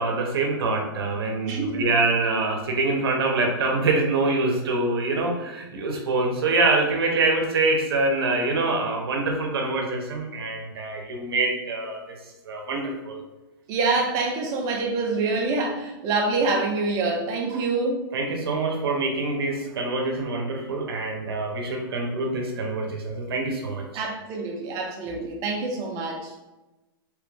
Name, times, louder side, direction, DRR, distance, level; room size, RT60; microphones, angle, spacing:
voice 1, 0.0-12.2 12.5-13.2 17.5-17.6 18.1-23.9, right 3 dB, 85° right, 1 dB, 0.7 m, -25 dB
voice 2, 1.4-1.8 13.7-18.0 23.9-26.3, right 3 dB, 25° right, 1 dB, 0.5 m, -26 dB
3.0 x 2.4 x 3.3 m, 1.1 s
supercardioid pair, 160°, 12 cm